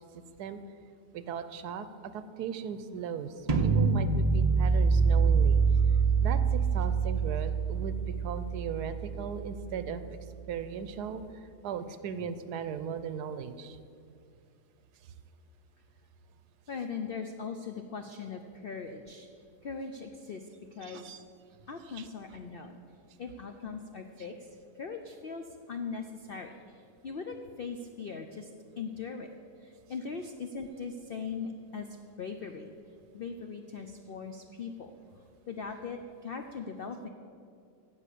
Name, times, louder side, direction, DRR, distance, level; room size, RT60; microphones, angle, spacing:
voice 1, 1.1-10.2 10.5-13.8 20.8-21.2 21.9-22.1, right 7 dB, 80° right, 12 dB, 1.2 m, -38 dB
sound 1, 3.5-9.5, right 5 dB, 45° right, 0.5 m, -25 dB
voice 2, 16.7-19.3 19.6-20.4 20.7-21.1 21.7-22.8 23.2-24.5 24.8-28.5 28.8-29.3 29.6-31.9 32.2-32.7 33.1-35.0 35.5-37.1, left 5 dB, 65° left, 6 dB, 0.5 m, -40 dB
10.5 x 7.4 x 8.4 m, 2.4 s
omnidirectional pair, 1.7 m